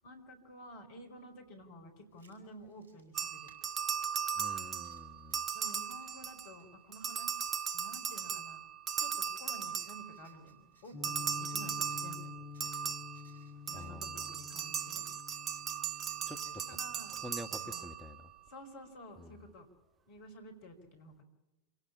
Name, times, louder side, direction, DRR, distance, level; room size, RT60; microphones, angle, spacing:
voice 1, 0.0-3.5 5.5-7.5 7.7-8.6 9.0-12.3 13.7-15.1 16.7-17.2 17.6-17.9 18.5-19.7 20.1-21.2, equal, 50° left, 6 dB, 4.9 m, -52 dB
Writing, 2.1-18.4, right 3 dB, 90° left, 7.2 m, -69 dB
sound 1, 3.1-6.6 6.9-10.4 11.0-18.3, right 7 dB, 25° right, 0.8 m, -38 dB
voice 2, 4.4-5.4 13.7-14.2 16.3-16.4 16.7-16.8 17.2-18.2 19.2-19.3, left 1 dB, ahead, 8 dB, 1.5 m, -47 dB
sound 2, 10.9-17.7, left 5 dB, 15° left, 7.3 m, -49 dB
27.0 x 18.0 x 8.6 m, 1.0 s
figure-of-eight pair, 90°, 0 cm